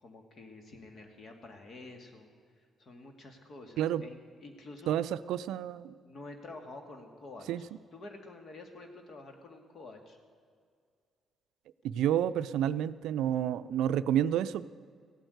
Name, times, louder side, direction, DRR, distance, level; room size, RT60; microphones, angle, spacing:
voice 1, 0.0-2.3 2.8-5.0 6.0-7.5 7.9-10.2, left 2 dB, 50° left, 5 dB, 2.2 m, -48 dB
voice 2, 4.9-5.9 7.5-7.6 11.8-14.7, right 10 dB, 85° right, 14 dB, 0.4 m, -29 dB
16.0 x 9.0 x 8.0 m, 2.1 s
cardioid pair, 90°, 0 cm